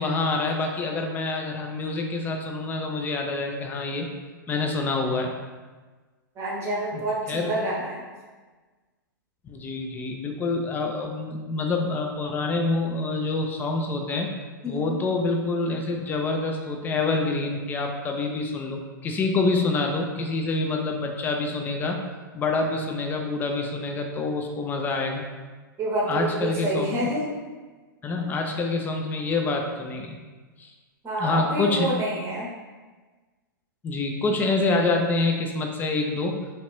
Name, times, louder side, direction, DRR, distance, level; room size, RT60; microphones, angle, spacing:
voice 1, 0.0-4.1 4.5-5.3 6.9-7.0 7.3-7.5 9.4-14.3 14.6-22.0 22.3-25.3 26.1-27.0 28.0-30.2 30.6-30.7 31.2-31.9 33.8-36.4, left 3 dB, 15° left, 2 dB, 0.4 m, -26 dB
voice 2, 6.4-8.0 14.6-15.0 25.8-27.3 31.0-32.5, right 1 dB, 25° right, -3 dB, 0.8 m, -28 dB
2.9 x 2.5 x 3.1 m, 1.3 s
figure-of-eight pair, 105°, 11 cm